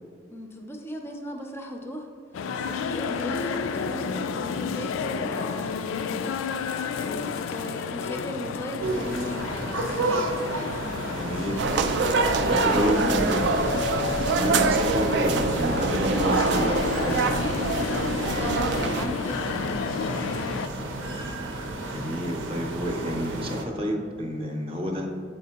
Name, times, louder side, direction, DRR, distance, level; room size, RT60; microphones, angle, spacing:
voice 1, 0.3-2.1 2.4-6.5 7.0-10.4 11.4-13.4 18.4-20.9, equal, 10° left, 3 dB, 0.4 m, -37 dB
sound 1, 2.3-20.7, left 6 dB, 80° left, 0.3 m, -31 dB
sound 2, 8.8-23.6, right 2 dB, 75° right, 0.7 m, -33 dB
voice 2, 11.1-11.6 12.4-17.4 21.9-25.1, equal, 30° right, 1 dB, 0.7 m, -29 dB
sound 3, 11.6-19.1, right 4 dB, 60° right, 0.3 m, -25 dB
8.2 x 4.2 x 2.9 m, 2.1 s
head